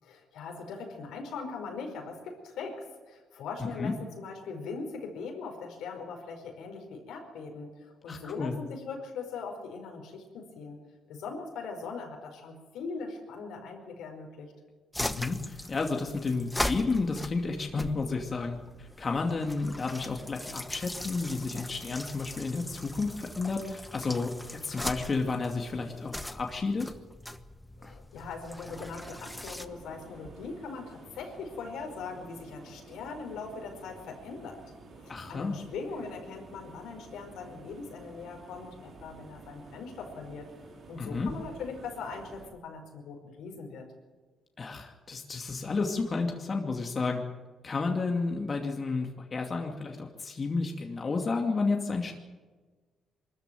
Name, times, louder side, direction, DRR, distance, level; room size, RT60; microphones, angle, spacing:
voice 1, 0.0-10.8 11.1-14.5 27.8-34.6 34.9-40.5 40.9-43.9, left 4 dB, 85° left, 3 dB, 5.0 m, -40 dB
voice 2, 8.1-8.6 15.0-26.9 35.1-35.6 41.0-41.3 44.6-47.2 47.6-52.1, left 3 dB, 35° left, 2 dB, 2.5 m, -31 dB
sound 1, 14.9-29.7, left 1 dB, 10° left, 1.2 m, -40 dB
sound 2, 28.6-42.5, right 3 dB, 55° right, 3.9 m, -51 dB
23.5 x 14.0 x 9.3 m, 1.4 s
cardioid pair, 90°, 0 cm